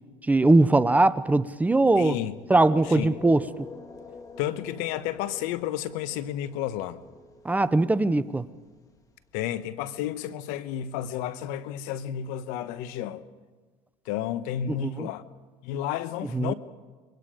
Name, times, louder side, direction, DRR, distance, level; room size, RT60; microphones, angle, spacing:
voice 1, 0.3-2.2 2.5-3.5 7.4-8.4 14.7-15.1 16.3-16.5, right 2 dB, 10° right, 0.7 m, -21 dB
sound 1, 1.6-9.6, left 4 dB, 25° left, 2.1 m, -47 dB
voice 2, 2.0-2.3 2.9-3.1 4.4-7.0 9.3-13.2 14.1-15.2 15.6-16.5, left 11 dB, 75° left, 1.2 m, -31 dB
26.0 x 23.0 x 5.1 m
supercardioid pair, 110°, 14 cm